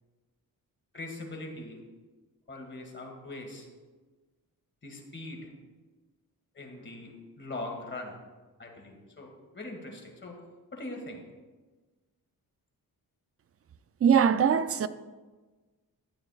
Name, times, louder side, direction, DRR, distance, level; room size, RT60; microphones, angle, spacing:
voice 1, 0.9-1.8 2.5-3.7 4.8-5.5 6.5-8.2 8.6-10.4 10.7-11.2, left 2 dB, 30° left, 1.7 m, -41 dB
voice 2, 14.0-14.9, right 7 dB, 40° right, 0.4 m, -22 dB
12.0 x 8.9 x 2.4 m
wide cardioid pair, 115°, 37 cm